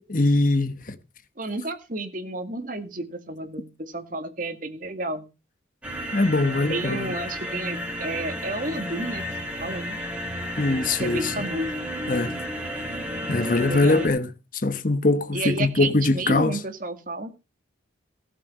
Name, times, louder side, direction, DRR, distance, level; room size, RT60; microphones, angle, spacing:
voice 1, 0.1-1.0 6.1-7.1 10.6-11.3 12.1-12.4 12.8-12.9 13.3-16.6, left 2 dB, 45° left, 1.1 m, -22 dB
voice 2, 1.4-5.3 6.7-9.3 9.6-10.0 11.0-11.8 13.6-14.1 15.3-17.3, right 2 dB, 45° right, 2.1 m, -31 dB
sound 1, 5.8-14.1, equal, 5° right, 2.9 m, -32 dB
17.5 x 7.5 x 5.6 m
head